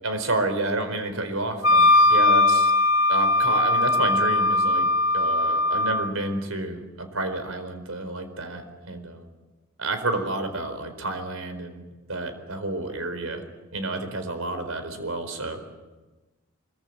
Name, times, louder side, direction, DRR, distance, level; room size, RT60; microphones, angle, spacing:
voice 1, 0.0-2.7 3.1-4.9 5.1-9.3 9.8-13.4 13.7-15.6, right 2 dB, 80° right, 8 dB, 4.5 m, -30 dB
Wind instrument woodwind instrument, 1.6-6.1, left 2 dB, 85° left, 1.8 m, -20 dB
24.5 x 23.0 x 8.1 m, 1.2 s
head